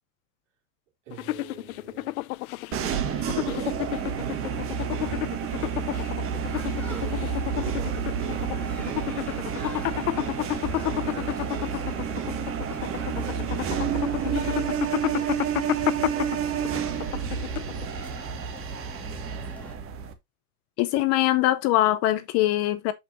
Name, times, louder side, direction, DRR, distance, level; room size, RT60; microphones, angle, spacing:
voice 1, 1.0-2.3 2.7-5.4 6.9-10.1 10.4-12.2 12.7-16.9, right 8 dB, 60° right, 3.2 m, -46 dB
sound 1, 1.1-18.0, left 19 dB, 75° left, 0.5 m, -31 dB
sound 2, 2.7-20.1, right 8 dB, 30° right, 1.3 m, -30 dB
sound 3, 6.5-19.7, left 1 dB, 5° left, 1.9 m, -42 dB
voice 2, 20.8-22.9, left 15 dB, 35° left, 0.7 m, -22 dB
7.4 x 5.5 x 2.7 m
hypercardioid pair, 125°, 44 cm